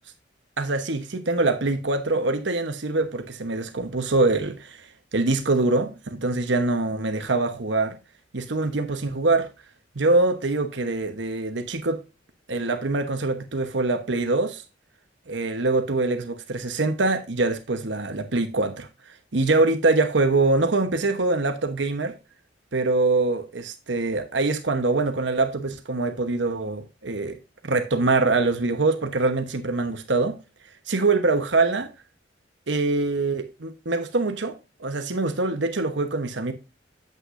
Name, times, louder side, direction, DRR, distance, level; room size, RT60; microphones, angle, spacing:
voice 1, 0.6-8.0 8.3-9.5 9.9-12.0 12.5-14.6 15.3-18.9 19.3-22.1 22.7-27.4 27.6-30.4 30.9-31.9 32.7-34.5 34.8-36.5, right 3 dB, 70° right, 1.1 m, -24 dB
8.8 x 8.2 x 2.6 m
head